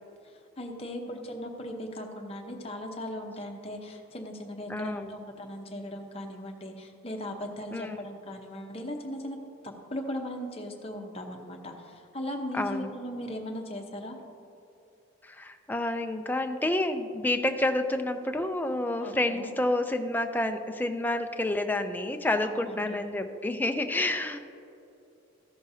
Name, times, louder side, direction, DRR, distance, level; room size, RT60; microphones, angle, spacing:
voice 1, 0.2-9.4 9.6-14.2 19.0-19.5 22.4-22.8, equal, 30° left, 2 dB, 0.8 m, -38 dB
voice 2, 4.7-5.2 7.7-8.0 12.5-12.9 15.2-24.4, left 1 dB, 10° left, 6 dB, 0.4 m, -29 dB
14.5 x 6.4 x 2.7 m, 2.8 s
head